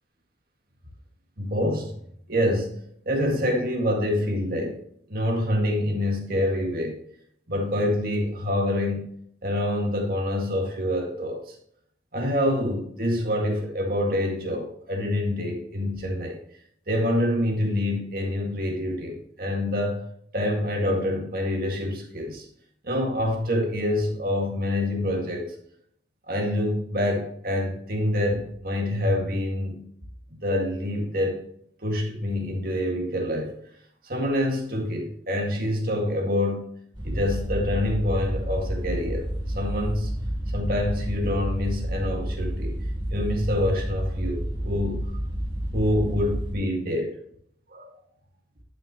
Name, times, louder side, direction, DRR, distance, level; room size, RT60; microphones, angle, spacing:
voice 1, 1.4-1.9 2.3-2.8 3.1-4.8 5.1-7.0 7.5-9.1 9.4-11.6 12.1-16.4 16.9-20.0 20.3-22.5 22.8-25.5 26.3-29.9 30.3-31.4 31.8-33.5 34.0-36.7 37.0-39.3 39.5-40.1 40.5-42.8 43.1-45.1 45.7-47.2 47.7-47.9, left 1 dB, 55° right, 1 dB, 2.0 m, -26 dB
sound 1, 36.9-46.5, equal, 25° right, 1.5 m, -30 dB
10.5 x 6.2 x 3.0 m, 0.67 s
head